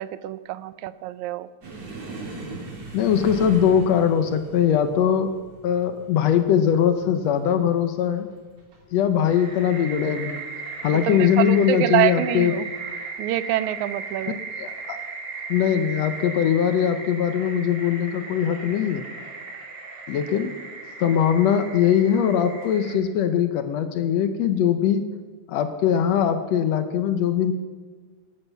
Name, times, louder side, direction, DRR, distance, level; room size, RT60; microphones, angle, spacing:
voice 1, 0.0-1.5 10.9-12.7 13.2-14.4, right 14 dB, 80° right, 16 dB, 1.9 m, -26 dB
sound 1, 1.6-8.8 9.1-9.5 9.8-10.0 10.9-11.4 12.4-12.6 13.9-14.1, right 2 dB, 60° right, 3.6 m, -39 dB
voice 2, 2.9-5.3 5.6-8.3 8.9-10.4 10.8-12.5 14.6-15.0 15.5-19.0 20.1-20.5 21.0-25.1 25.5-27.5, left 8 dB, 70° left, 9 dB, 1.8 m, -21 dB
sound 2, 9.3-22.9, right 4 dB, 40° right, 2.8 m, -36 dB
13.5 x 12.5 x 5.9 m, 1.4 s
omnidirectional pair, 3.4 m